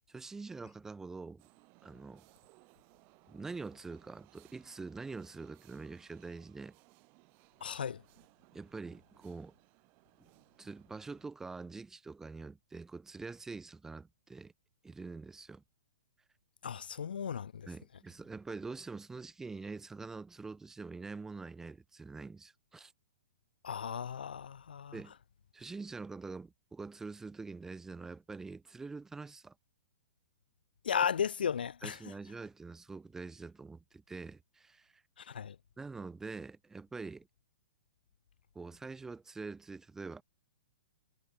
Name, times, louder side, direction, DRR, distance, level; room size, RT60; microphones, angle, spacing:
voice 1, 0.1-1.5 1.8-2.2 3.3-6.8 8.5-9.5 10.2-10.3 10.6-14.5 14.8-15.6 17.7-22.9 24.9-25.1 25.5-29.5 31.8-35.0 35.8-37.3 38.5-40.2, right 4 dB, 10° right, 1.1 m, -45 dB
sound 1, 1.4-11.3, right 30 dB, 40° right, 5.9 m, -65 dB
voice 2, 7.6-8.0 16.6-17.7 23.6-25.0 30.8-32.1 35.2-35.6, left 7 dB, 80° left, 0.7 m, -35 dB
hypercardioid pair, 130°, 5 cm